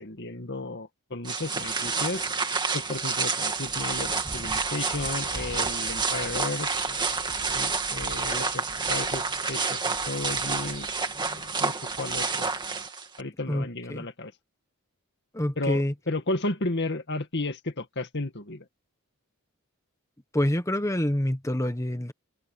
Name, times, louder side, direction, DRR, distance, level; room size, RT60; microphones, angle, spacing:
voice 1, 0.0-2.3 2.7-10.9 11.1-12.5 13.2-14.3 15.6-18.7, left 2 dB, 50° left, 2.2 m, -33 dB
sound 1, 1.2-13.2, right 4 dB, 20° right, 2.2 m, -29 dB
voice 2, 13.5-14.1 15.3-15.9 20.3-22.1, left 1 dB, 15° left, 1.4 m, -27 dB
head